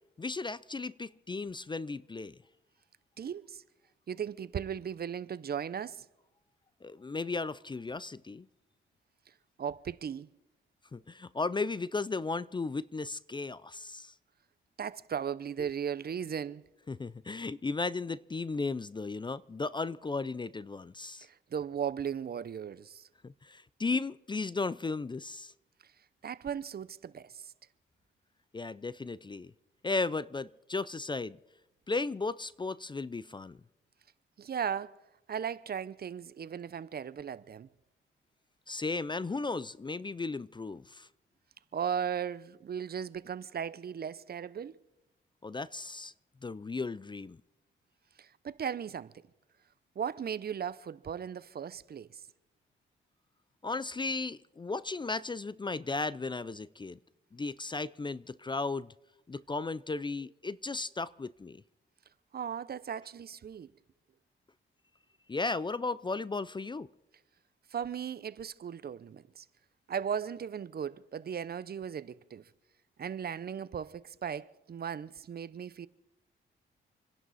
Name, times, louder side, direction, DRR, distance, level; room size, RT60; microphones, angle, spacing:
voice 1, 0.2-2.4 6.8-8.5 10.9-14.1 15.6-15.7 16.9-21.3 23.2-25.5 28.5-29.5 29.8-31.4 31.9-33.6 38.7-41.1 45.4-46.1 46.4-47.4 53.6-57.0 57.3-58.9 59.3-61.6 65.3-66.9, left 3 dB, 20° left, 0.5 m, -35 dB
voice 2, 3.2-3.6 4.1-6.1 9.6-10.3 14.8-16.6 21.2-23.1 26.2-27.5 34.4-35.0 35.3-37.7 41.7-44.8 48.2-49.1 50.0-52.2 62.3-63.7 67.7-69.4 69.9-72.5 73.0-75.9, right 8 dB, 50° right, 0.7 m, -37 dB
27.5 x 11.0 x 4.2 m
cardioid pair, 65°, 21 cm